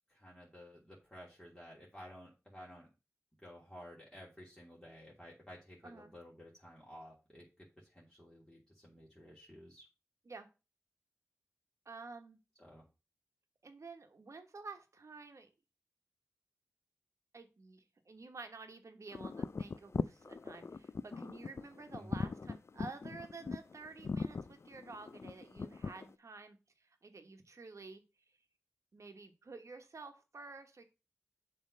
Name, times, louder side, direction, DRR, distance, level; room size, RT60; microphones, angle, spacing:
voice 1, 0.1-2.9 3.4-9.9 12.6-12.9 22.0-22.2, equal, 10° left, -5 dB, 2.8 m, -54 dB
voice 2, 11.8-12.4 13.6-15.5 17.3-28.0 28.9-30.8, right 3 dB, 75° right, 6 dB, 1.2 m, -51 dB
sound 1, 19.1-26.1, left 4 dB, 60° left, 0.4 m, -40 dB
7.3 x 3.3 x 6.3 m, 0.29 s
cardioid pair, 45°, 5 cm